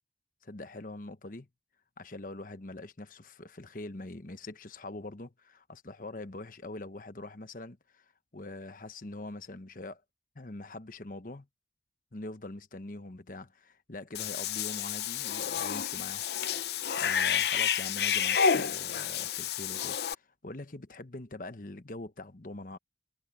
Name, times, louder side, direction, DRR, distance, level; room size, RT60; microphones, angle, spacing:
voice 1, 0.4-1.5 2.0-8.0 8.3-10.0 10.3-11.5 12.1-22.8, left 2 dB, 50° left, 1.1 m, -43 dB
Cat / Bathtub (filling or washing), 14.1-20.1, left 7 dB, 65° left, 0.6 m, -30 dB
head